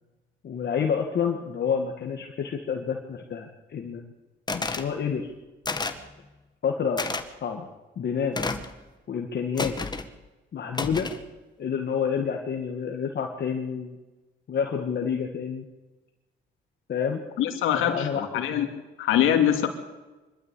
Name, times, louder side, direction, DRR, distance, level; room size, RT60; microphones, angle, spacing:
voice 1, 0.4-4.0 4.5-5.3 6.6-7.0 7.4-7.7 8.0-8.4 9.1-9.7 10.5-11.1 11.6-14.0 14.5-15.6 16.9-17.2 17.7-18.7, left 7 dB, 55° left, 2 dB, 2.1 m, -29 dB
sound 1, 4.5-4.9 5.6-6.1 7.0-7.2 8.3-8.7 9.6-10.1 10.7-11.2, left 3 dB, 20° left, 1.8 m, -30 dB
voice 2, 17.4-18.7 19.0-19.7, left 10 dB, 90° left, 5 dB, 2.8 m, -23 dB
25.0 x 12.5 x 8.6 m, 1.1 s
cardioid pair, 90°, 20 cm